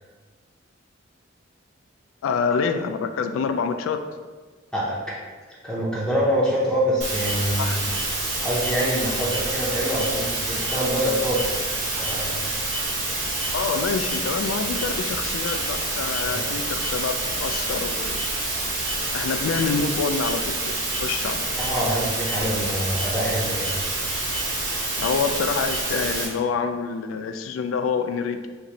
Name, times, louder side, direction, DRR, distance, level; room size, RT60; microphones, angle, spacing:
voice 1, 2.2-4.1 7.6-7.8 13.5-18.3 19.1-21.5 25.0-28.5, left 5 dB, 90° left, 8 dB, 0.3 m, -27 dB
voice 2, 4.7-5.2 5.6-7.8 8.4-11.5 12.0-12.4 16.3-16.4 21.6-23.7, equal, 5° left, -8 dB, 0.6 m, -25 dB
sound 1, 7.0-26.3, right 2 dB, 70° right, 1.0 m, -27 dB
3.0 x 2.6 x 3.9 m, 1.4 s
head